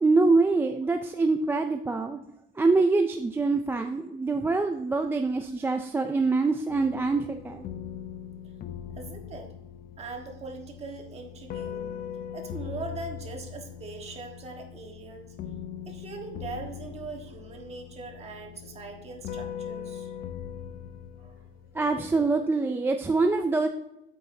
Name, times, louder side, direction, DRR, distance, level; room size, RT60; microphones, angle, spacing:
voice 1, 0.0-2.2 2.6-7.7 21.7-23.7, right 3 dB, 10° right, 5 dB, 0.3 m, -25 dB
sound 1, 6.7-22.1, left 8 dB, 45° left, 0.6 m, -40 dB
voice 2, 9.0-9.5 10.0-11.9 12.3-15.3 15.8-20.1 21.2-21.4, right 3 dB, 30° right, 3 dB, 1.4 m, -41 dB
8.7 x 8.3 x 2.7 m, 0.84 s
cardioid pair, 170°, 21 cm